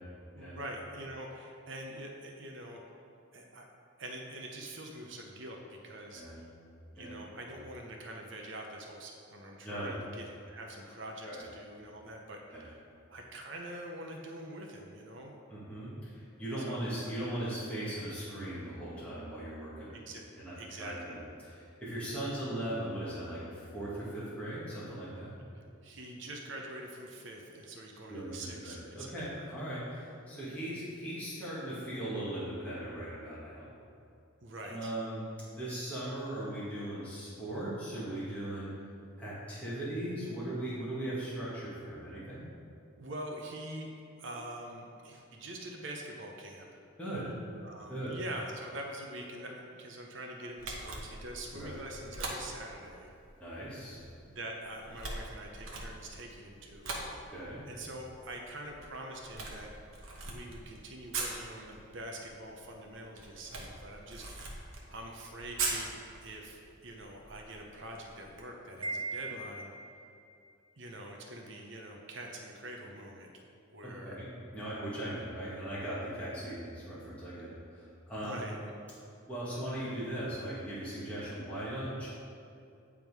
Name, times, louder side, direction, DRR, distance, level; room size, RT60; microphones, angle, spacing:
voice 1, 0.3-2.8 3.3-3.7 4.0-6.4 7.0-15.3 16.7-16.8 19.9-20.2 20.6-21.1 25.8-29.4 34.4-34.9 43.0-43.9 44.2-46.7 47.6-53.1 54.2-56.9 57.7-59.7 60.2-66.0 66.2-69.7 70.8-73.3 73.7-74.2 78.2-78.6, right 1 dB, 60° right, 1 dB, 0.7 m, -44 dB
voice 2, 15.5-19.9 20.4-25.3 28.1-33.7 34.6-38.7 39.2-42.4 47.0-47.3 47.9-48.1 51.5-51.7 53.4-54.0 57.3-57.6 74.0-78.4 79.3-82.1, right 1 dB, 5° left, -10 dB, 1.5 m, -39 dB
Camera, 50.6-68.4, right 3 dB, 75° right, 1.0 m, -43 dB
Wind chime, 68.8-70.2, right 3 dB, 25° right, 0.4 m, -39 dB
9.0 x 3.7 x 4.7 m, 2.6 s
head